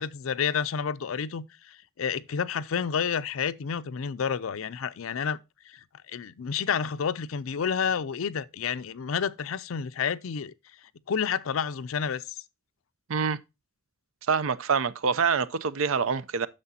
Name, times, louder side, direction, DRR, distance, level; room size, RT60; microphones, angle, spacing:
voice 1, 0.0-5.4 5.7-5.8 6.1-10.5 11.1-12.2, left 7 dB, 70° left, 0.5 m, -30 dB
voice 2, 14.3-16.5, right 5 dB, 70° right, 0.5 m, -26 dB
9.7 x 6.7 x 2.7 m
head